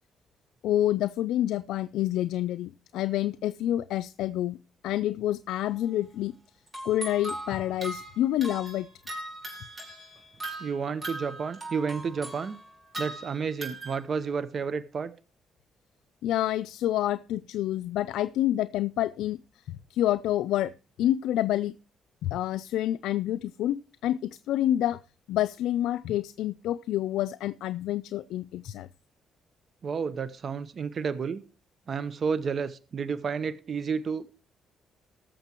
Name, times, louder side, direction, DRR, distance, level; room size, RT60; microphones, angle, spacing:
voice 1, 0.6-4.6 4.8-6.3 6.8-8.9 16.2-19.4 19.7-20.7 21.0-21.7 22.2-23.8 24.0-25.0 25.3-28.9, left 13 dB, 85° left, 0.4 m, -28 dB
sound 1, 5.7-5.9 6.7-14.1, right 1 dB, 20° right, 5.3 m, -40 dB
voice 2, 10.6-12.6 13.0-15.1 29.8-31.4 31.9-34.3, right 5 dB, 50° right, 0.9 m, -31 dB
20.5 x 6.8 x 2.9 m
cardioid pair, 90°, 0 cm